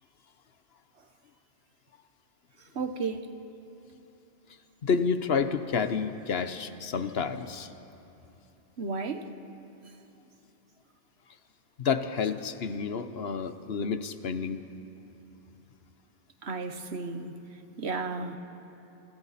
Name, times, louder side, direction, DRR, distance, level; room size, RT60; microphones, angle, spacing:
voice 1, 2.6-3.3 8.8-9.3 16.4-17.3 17.8-18.4, right 4 dB, 75° right, 1.4 m, -33 dB
voice 2, 4.8-7.7 11.8-14.6, left 5 dB, 65° left, 1.1 m, -29 dB
29.5 x 28.5 x 4.2 m
omnidirectional pair, 1.1 m